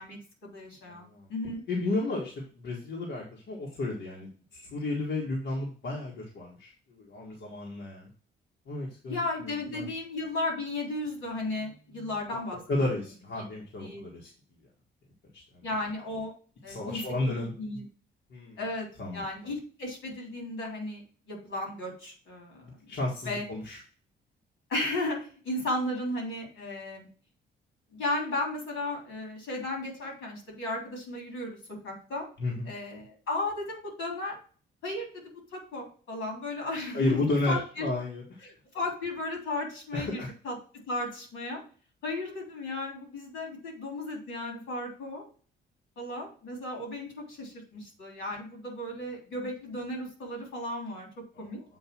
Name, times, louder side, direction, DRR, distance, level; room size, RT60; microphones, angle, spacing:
voice 1, 0.0-1.6 9.1-12.9 13.8-14.0 15.6-16.3 16.6-17.0 17.2-17.8 18.6-18.9 19.1-21.0 21.3-22.9 23.2-23.4 24.7-27.1 27.9-31.6 31.8-32.3 32.6-34.4 34.8-37.9 38.4-40.6 40.9-41.6 42.0-45.2 46.0-51.6, left 2 dB, 85° left, 1 dB, 3.4 m, -35 dB
voice 2, 0.9-1.3 1.7-8.1 8.7-9.9 12.7-14.3 15.3-15.6 16.7-17.5 18.3-18.6 19.0-19.5 22.6-23.8 32.4-32.7 36.9-38.4 39.9-40.3 51.4-51.6, left 2 dB, 65° left, -3 dB, 1.8 m, -33 dB
7.9 x 2.7 x 5.9 m, 0.39 s
cardioid pair, 90°, 20 cm